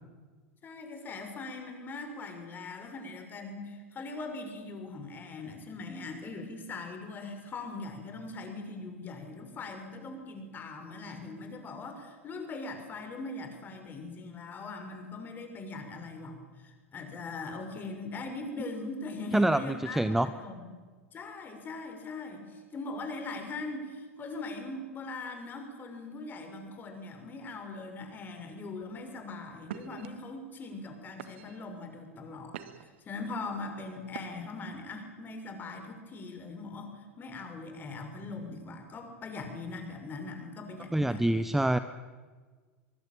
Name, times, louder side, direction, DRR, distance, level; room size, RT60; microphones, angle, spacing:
voice 1, 0.6-20.7 21.1-41.5, left 3 dB, 25° left, 5 dB, 6.3 m, -41 dB
voice 2, 19.3-20.3 40.9-41.8, right 1 dB, 5° right, 12 dB, 0.9 m, -26 dB
sound 1, 28.8-29.1 29.6-30.1 30.7-30.9 31.2-31.7 32.2-33.0 34.1-34.6, right 10 dB, 60° right, 1.9 m, -44 dB
24.0 x 23.5 x 9.1 m, 1.4 s
figure-of-eight pair, 85°, 7 cm